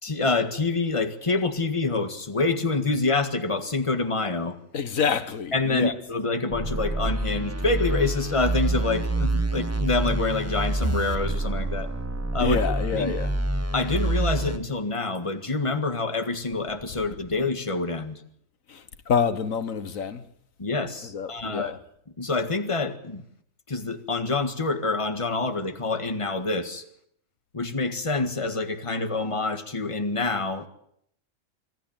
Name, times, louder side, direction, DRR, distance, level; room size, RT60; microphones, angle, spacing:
voice 1, 0.0-4.6 5.5-11.9 12.3-12.6 12.9-13.1 13.7-18.2 20.6-21.8 22.2-23.2 23.7-26.8 27.5-30.7, left 3 dB, 25° left, 1.8 m, -27 dB
voice 2, 4.7-6.0 12.4-13.3 18.7-20.3 21.0-21.8, left 6 dB, 90° left, 1.7 m, -27 dB
sound 1, 6.5-14.6, right 2 dB, 15° right, 0.8 m, -27 dB
26.0 x 14.0 x 9.0 m
omnidirectional pair, 1.4 m